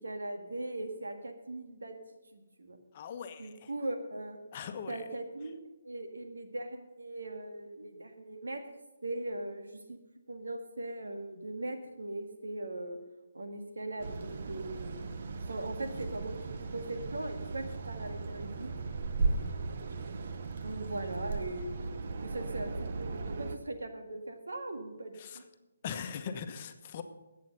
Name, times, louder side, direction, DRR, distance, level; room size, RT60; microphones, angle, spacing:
voice 1, 0.0-2.0 2.3-2.8 3.4-4.4 4.9-5.6 5.8-8.6 9.0-10.0 10.3-13.0 13.3-14.9 15.3-18.9 20.6-21.9 22.2-22.7 23.0-25.4, right 2 dB, 85° right, 5 dB, 1.8 m, -39 dB
voice 2, 2.9-3.7 4.5-5.1 19.2-19.5 25.2-25.4 25.8-27.0, left 7 dB, 35° left, 7 dB, 1.1 m, -41 dB
sound 1, 14.0-23.6, right 4 dB, 55° right, 1.0 m, -37 dB
11.5 x 8.5 x 6.8 m, 1.0 s
hypercardioid pair, 150°, 0 cm